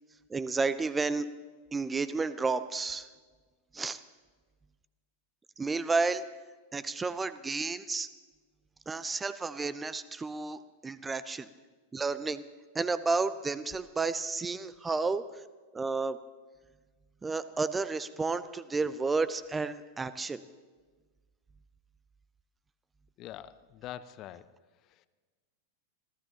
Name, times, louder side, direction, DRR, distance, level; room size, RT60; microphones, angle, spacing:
voice 1, 0.3-1.3 1.7-3.1 3.7-4.0 5.6-6.2 6.7-8.1 8.9-11.5 11.9-12.4 12.7-15.2 15.7-16.2 17.2-20.4, right 4 dB, 15° right, 14 dB, 0.6 m, -31 dB
voice 2, 23.2-24.5 24.8-25.1, left 12 dB, 35° left, 15 dB, 0.6 m, -44 dB
27.0 x 15.5 x 2.9 m, 1.4 s
figure-of-eight pair, 90°, 0 cm